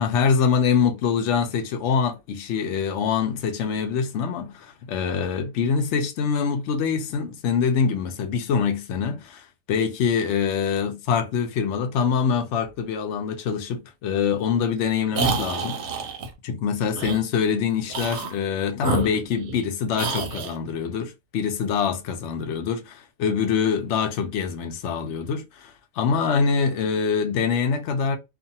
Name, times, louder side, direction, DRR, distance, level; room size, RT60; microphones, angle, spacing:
voice 1, 0.0-15.8 16.4-28.2, left 6 dB, 65° left, 0.8 m, -24 dB
sound 1, 15.1-16.3 16.9-17.2 17.9-18.4 18.8-19.6 20.0-20.6, right 4 dB, 60° right, 0.8 m, -28 dB
2.6 x 2.4 x 2.7 m
omnidirectional pair, 1.5 m